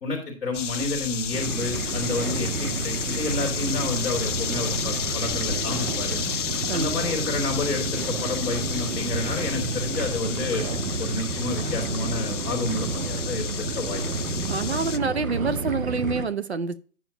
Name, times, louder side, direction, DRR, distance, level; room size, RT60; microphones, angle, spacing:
voice 1, 0.0-6.2 6.7-10.6 11.0-14.0 14.7-14.8, left 2 dB, 5° left, 0.9 m, -30 dB
sound 1, 0.5-15.0, left 8 dB, 55° left, 0.5 m, -32 dB
sound 2, 1.3-16.3, right 3 dB, 70° right, 1.3 m, -30 dB
voice 2, 14.5-16.8, right 4 dB, 50° right, 0.5 m, -27 dB
10.0 x 7.1 x 2.9 m
hypercardioid pair, 175°, 43 cm